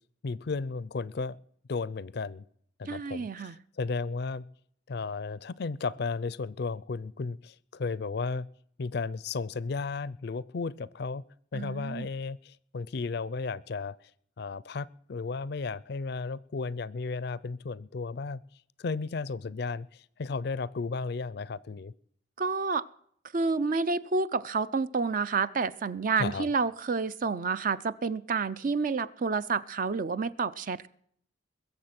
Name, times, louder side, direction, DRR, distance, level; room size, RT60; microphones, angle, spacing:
voice 1, 0.2-1.4 1.7-2.4 2.8-4.4 4.9-8.5 8.8-11.2 11.5-14.0 14.4-18.4 18.8-21.9 26.2-26.5, left 4 dB, 60° left, 21 dB, 0.4 m, -34 dB
voice 2, 2.9-3.5 11.5-12.1 22.4-22.8 23.3-30.9, right 4 dB, 45° right, 15 dB, 0.5 m, -29 dB
22.0 x 7.4 x 5.9 m, 0.65 s
head